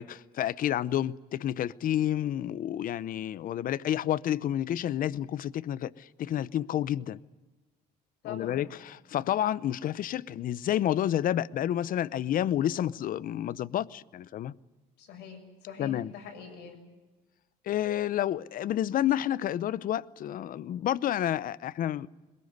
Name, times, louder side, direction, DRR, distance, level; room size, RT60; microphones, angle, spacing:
voice 1, 0.0-7.2 8.2-14.5 15.8-16.1 17.7-22.1, left 11 dB, 55° left, 0.7 m, -30 dB
voice 2, 8.2-8.6 15.0-16.8, left 7 dB, 90° left, 7.2 m, -43 dB
22.0 x 21.0 x 9.5 m
cardioid pair, 110°, 17 cm